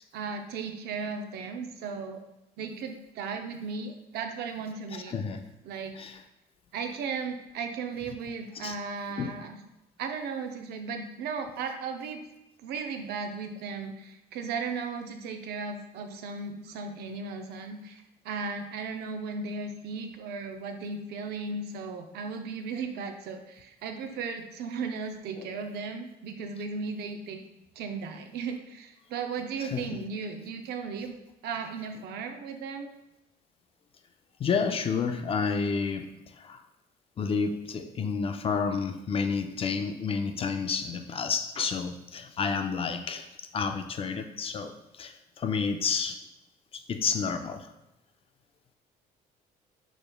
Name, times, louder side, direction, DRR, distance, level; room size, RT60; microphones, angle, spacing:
voice 1, 0.1-2.2 2.6-5.2 5.7-5.9 6.7-9.6 10.0-12.2 12.6-27.4 27.8-31.2 31.4-32.9, right 5 dB, 75° right, 5 dB, 0.5 m, -36 dB
voice 2, 4.9-5.4 6.0-6.2 8.6-8.7 9.2-9.3 25.4-25.5 29.6-30.0 34.4-36.1 36.4-36.6 37.2-43.3 43.5-46.2 46.7-47.7, left 5 dB, 35° left, 7 dB, 0.4 m, -30 dB
4.9 x 3.4 x 2.2 m, 0.93 s
cardioid pair, 110°, 17 cm